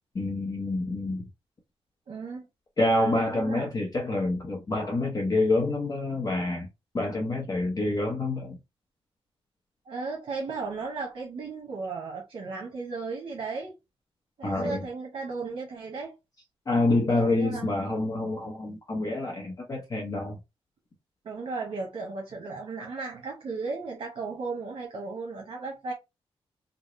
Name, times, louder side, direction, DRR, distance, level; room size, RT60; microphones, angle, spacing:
voice 1, 0.2-1.2 2.8-6.7 6.9-8.6 14.4-14.8 16.7-20.4, left 2 dB, 35° left, 0.8 m, -27 dB
voice 2, 2.1-2.5 3.1-3.7 9.9-13.8 14.4-16.1 17.1-17.7 21.2-25.9, right 4 dB, 60° right, 0.9 m, -35 dB
3.0 x 2.1 x 3.8 m
wide cardioid pair, 130°, 10 cm